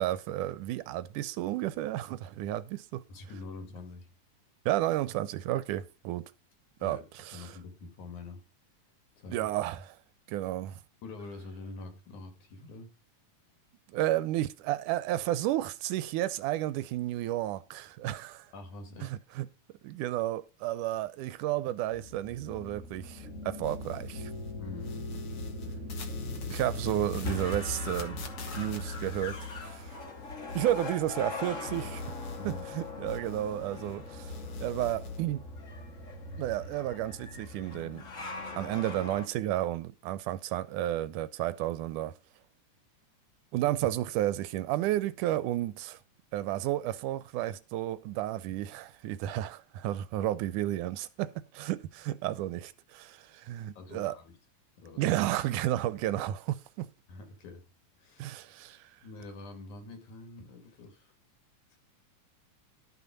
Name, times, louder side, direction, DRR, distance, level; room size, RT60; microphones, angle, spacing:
voice 1, 0.0-3.0 4.7-6.3 6.8-7.5 9.3-10.0 10.3-10.8 13.9-18.5 19.0-19.5 19.8-24.3 26.5-28.3 28.5-29.4 29.6-29.9 30.6-32.0 32.5-34.3 34.6-35.4 36.4-38.1 38.6-42.2 43.5-46.0 46.3-54.2 55.0-56.9 58.2-58.9, right 14 dB, 85° right, 2.2 m, -32 dB
voice 2, 3.1-4.1 6.8-7.1 7.3-8.4 9.2-9.5 11.0-12.9 18.5-19.1 24.6-25.1 25.4-25.5 32.4-32.7 53.8-54.4 54.8-55.0 57.1-57.7 58.0-58.4 59.0-61.1, left 3 dB, 70° left, 3.7 m, -45 dB
sound 1, 21.9-39.3, left 2 dB, 35° left, 1.3 m, -41 dB
sound 2, 23.6-24.5 24.8-31.4 31.7-34.0 34.2-35.2, left 3 dB, 50° left, 2.2 m, -42 dB
12.5 x 5.9 x 5.4 m
omnidirectional pair, 3.6 m